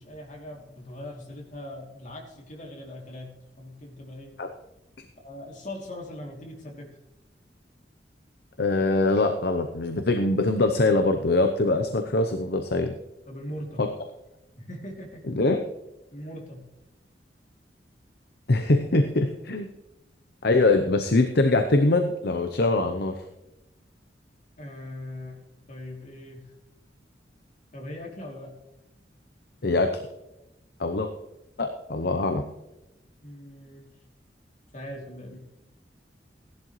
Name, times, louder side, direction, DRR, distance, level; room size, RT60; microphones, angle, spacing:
voice 1, 0.0-3.3 3.6-4.3 5.2-6.9 13.3-13.8 14.5-15.2 16.1-16.6 18.8-18.9 24.6-25.4 25.7-26.4 27.7-28.5 33.2-33.9 34.7-35.4, left 1 dB, 45° left, 0 dB, 2.8 m, -40 dB
voice 2, 8.6-12.9 13.8-13.9 15.3-15.6 18.5-19.7 20.4-23.2 29.6-30.0 30.8-31.1 31.6-32.4, left 2 dB, 65° left, 6 dB, 0.8 m, -23 dB
16.0 x 11.5 x 3.2 m, 0.95 s
head